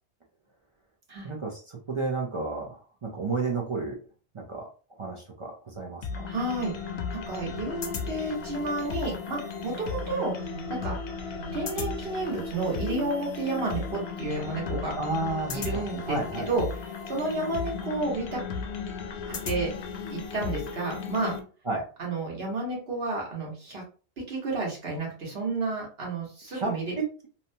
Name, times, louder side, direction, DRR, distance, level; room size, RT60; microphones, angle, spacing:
voice 1, 1.2-4.0 4.3-4.7 5.0-6.0 15.0-16.6 21.7-21.8 26.5-27.3, right 3 dB, 45° right, 0 dB, 0.4 m, -32 dB
sound 1, 6.0-21.4, left 5 dB, 70° left, 0.8 m, -35 dB
voice 2, 6.3-6.7 7.1-10.3 10.7-11.0 11.5-15.0 15.5-16.7 17.1-18.4 19.3-19.7 20.1-21.4 22.0-23.8 24.3-26.9, right 2 dB, 65° right, -2 dB, 1.3 m, -31 dB
2.9 x 2.2 x 2.6 m, 0.37 s
omnidirectional pair, 1.1 m